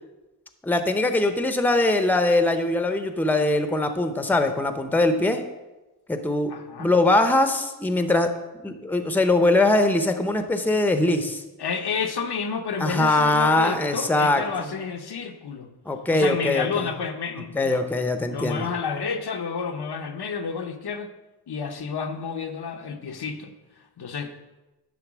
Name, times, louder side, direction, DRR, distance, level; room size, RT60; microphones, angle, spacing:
voice 1, 0.6-5.4 6.1-6.5 6.8-8.3 8.6-11.4 12.8-14.7 15.9-16.9 17.5-18.7, left 2 dB, 5° left, 7 dB, 0.6 m, -22 dB
voice 2, 6.5-6.9 11.6-15.7 16.1-17.8 18.3-21.1 21.5-23.5 24.0-24.3, left 5 dB, 85° left, 5 dB, 0.8 m, -30 dB
10.0 x 3.8 x 6.1 m, 1.1 s
wide cardioid pair, 100°, 38 cm